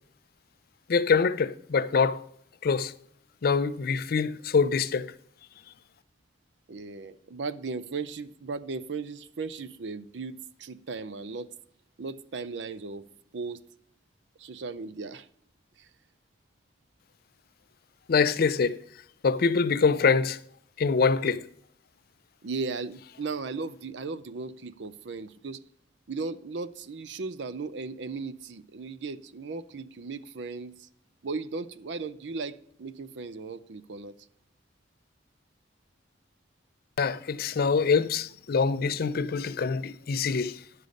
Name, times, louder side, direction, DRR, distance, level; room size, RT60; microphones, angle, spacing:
voice 1, 0.9-2.2 2.6-2.9 3.4-5.1 18.1-18.8 19.2-20.4 20.8-21.4 37.0-40.5, left 5 dB, 55° left, 0.4 m, -24 dB
voice 2, 6.7-11.5 12.0-13.0 13.3-13.6 14.4-15.3 15.8-15.9 22.4-25.6 26.1-30.9 31.2-34.1, right 4 dB, 75° right, 0.6 m, -36 dB
9.8 x 6.6 x 5.2 m
head